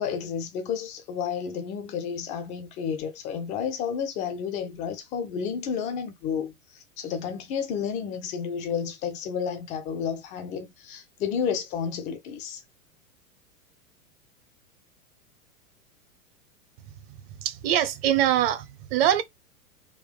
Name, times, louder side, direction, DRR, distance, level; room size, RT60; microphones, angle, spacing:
voice 1, 0.0-12.6, left 7 dB, 20° left, 0.3 m, -31 dB
voice 2, 17.4-19.2, right 11 dB, 45° right, 0.7 m, -23 dB
3.6 x 2.2 x 3.4 m
figure-of-eight pair, 100°, 44 cm